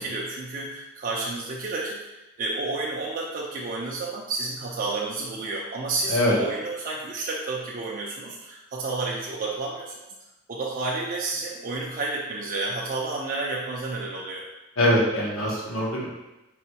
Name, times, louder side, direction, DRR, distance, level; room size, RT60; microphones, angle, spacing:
voice 1, 0.0-10.1 10.5-14.4, right 3 dB, 40° right, -3 dB, 0.4 m, -31 dB
voice 2, 14.8-16.1, left 1 dB, 80° left, -4 dB, 1.0 m, -23 dB
4.0 x 2.2 x 2.8 m, 1.0 s
head